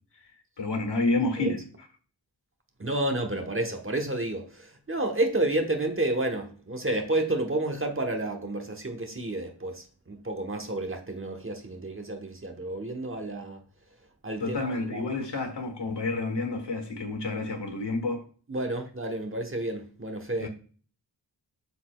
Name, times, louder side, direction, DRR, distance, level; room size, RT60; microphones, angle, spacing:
voice 1, 0.6-1.6 14.4-18.2 20.4-20.5, left 2 dB, 70° left, 1.7 m, -29 dB
voice 2, 2.8-13.6 14.2-15.1 18.5-20.5, right 2 dB, 30° right, 1.0 m, -30 dB
12.0 x 4.1 x 2.3 m
wide cardioid pair, 85°, 44 cm